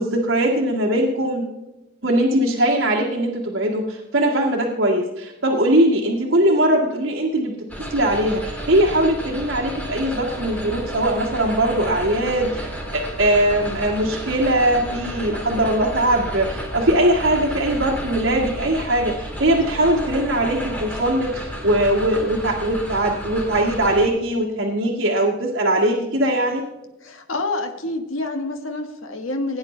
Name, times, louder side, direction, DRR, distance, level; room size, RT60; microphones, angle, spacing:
voice 1, 0.0-1.4 2.0-7.6 7.9-26.6, right 1 dB, 65° right, -5 dB, 1.7 m, -20 dB
sound 1, 7.7-24.1, equal, 5° left, 1.9 m, -32 dB
voice 2, 27.0-29.6, left 2 dB, 85° left, 5 dB, 1.4 m, -27 dB
17.5 x 9.2 x 3.2 m, 1.0 s
head